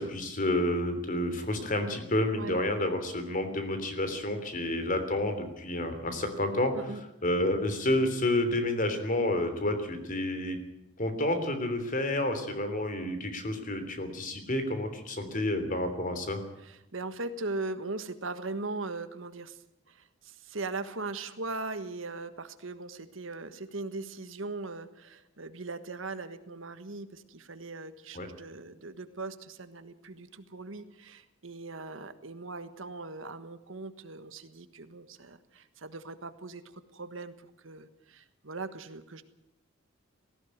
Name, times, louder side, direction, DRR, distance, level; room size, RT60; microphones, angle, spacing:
voice 1, 0.0-6.7 7.2-10.6 11.0-16.4 28.1-28.3, left 1 dB, 40° left, 8 dB, 3.3 m, -30 dB
voice 2, 2.3-2.6 6.7-7.0 16.6-19.6 19.9-39.2, right 3 dB, 70° right, 11 dB, 1.5 m, -39 dB
18.5 x 15.5 x 9.4 m, 0.88 s
head